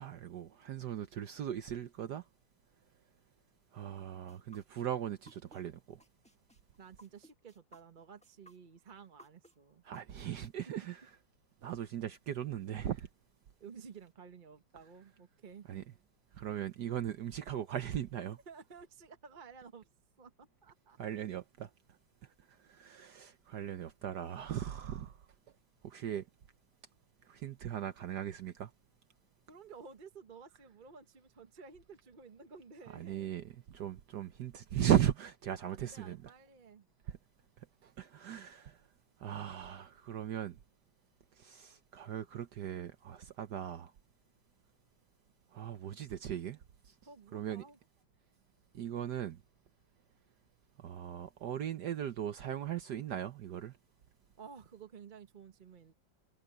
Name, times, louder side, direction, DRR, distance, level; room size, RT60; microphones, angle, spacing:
voice 1, 0.0-2.2 3.7-6.0 9.8-11.0 11.6-13.1 15.7-15.8 16.3-18.4 21.0-21.7 22.5-25.2 25.8-26.3 27.2-28.7 32.9-36.2 37.1-37.2 37.6-38.8 39.2-40.6 41.4-43.9 45.5-46.6 46.8-46.9 47.3-47.6 48.7-49.4 50.8-53.7, right 10 dB, 65° right, 1.3 m, -38 dB
sound 1, 4.3-5.6 6.0-10.5, equal, 5° left, 1.4 m, -59 dB
voice 2, 6.8-9.8 10.6-10.8 13.6-15.7 18.5-19.9 20.2-21.0 29.5-33.4 35.6-36.9 47.0-47.8 54.4-55.9, right 5 dB, 35° right, 0.8 m, -53 dB
omnidirectional pair, 2.1 m